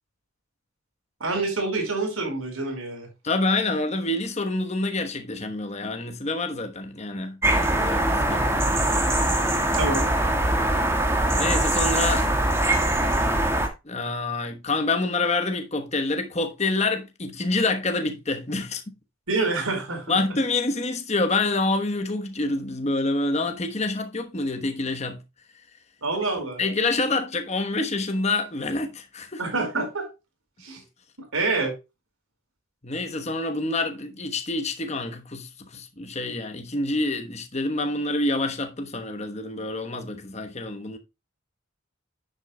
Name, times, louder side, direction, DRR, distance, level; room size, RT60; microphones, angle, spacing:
voice 1, 1.2-3.1 9.7-10.0 19.3-20.2 26.0-26.6 29.4-30.1 30.6-30.8 31.2-31.7, right 3 dB, 80° right, 4.7 m, -27 dB
voice 2, 3.2-8.5 11.4-12.3 13.8-18.9 20.1-25.2 26.6-29.4 32.8-41.0, left 2 dB, 30° left, 1.1 m, -27 dB
sound 1, 7.4-13.7, right 1 dB, 10° right, 1.6 m, -22 dB
10.5 x 7.9 x 2.3 m
head